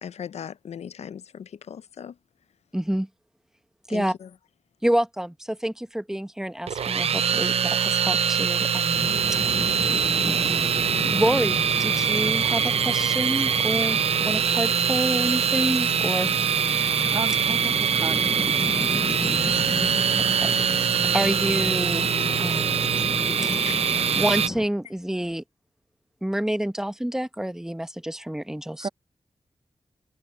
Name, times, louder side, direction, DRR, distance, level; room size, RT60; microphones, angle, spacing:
voice 1, 0.0-2.2 3.9-4.3 23.7-23.8, left 8 dB, 80° left, 0.5 m, -38 dB
voice 2, 2.7-3.1 3.9-4.1 4.8-10.4 11.0-16.3 20.2-20.6 21.1-22.8 24.1-25.4 26.2-28.9, right 1 dB, 5° right, 1.1 m, -28 dB
sound 1, 6.7-24.5, right 7 dB, 65° right, 0.4 m, -23 dB
Bird vocalization bird call bird song, 8.9-24.7, left 2 dB, 20° left, 0.5 m, -33 dB
voice 3, 17.1-18.7 28.8-28.9, right 4 dB, 45° right, 1.6 m, -34 dB
wide cardioid pair, 90°, 11 cm